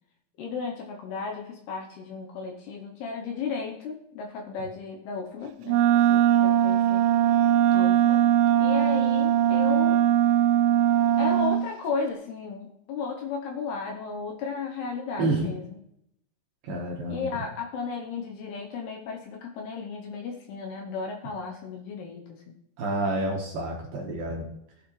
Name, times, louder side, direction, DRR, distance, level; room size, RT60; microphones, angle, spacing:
voice 1, 0.4-7.0 7.7-8.3 8.6-10.0 11.2-15.6 17.1-22.5, left 5 dB, 70° left, 1 dB, 2.6 m, -34 dB
Wind instrument woodwind instrument, 5.7-11.7, right 11 dB, 90° right, 3.1 m, -21 dB
voice 2, 15.2-15.6 16.6-17.4 22.8-24.5, right 2 dB, 65° right, -1 dB, 2.6 m, -29 dB
17.5 x 8.3 x 3.3 m, 0.78 s
omnidirectional pair, 5.5 m